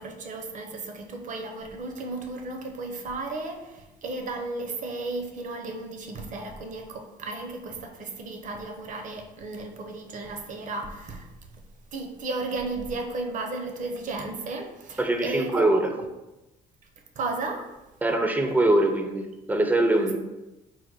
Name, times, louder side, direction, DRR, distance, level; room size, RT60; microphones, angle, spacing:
voice 1, 0.0-11.3 11.9-15.7 16.0-16.1 17.2-17.7, right 3 dB, 50° right, 3 dB, 0.7 m, -34 dB
voice 2, 15.0-15.9 18.0-20.2, right 1 dB, 10° right, 4 dB, 0.5 m, -23 dB
4.2 x 2.1 x 4.5 m, 1.0 s
cardioid pair, 110°, 17 cm